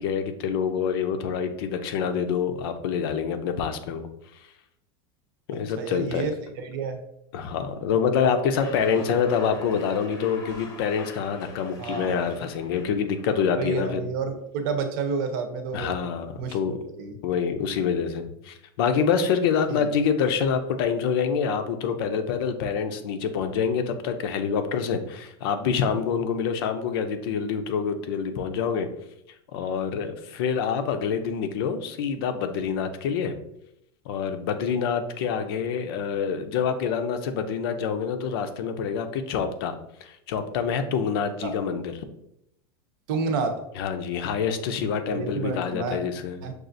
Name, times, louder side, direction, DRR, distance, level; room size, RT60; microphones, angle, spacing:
voice 1, 0.0-4.1 5.5-6.3 7.3-14.1 15.7-16.8 17.2-28.9 29.5-33.3 34.1-39.8 40.0-41.9 43.8-46.4, left 6 dB, 70° left, 8 dB, 0.5 m, -26 dB
voice 2, 5.8-6.3 6.6-7.0 8.9-9.1 11.8-12.2 13.6-15.9 16.4-17.2 19.7-19.9 41.4-41.5 43.1-43.6 45.1-46.0 46.4-46.5, right 5 dB, 65° right, 6 dB, 0.7 m, -30 dB
sound 1, 8.6-13.9, left 3 dB, 25° left, 0.7 m, -45 dB
6.1 x 2.4 x 2.6 m, 0.79 s
supercardioid pair, 170°, 13 cm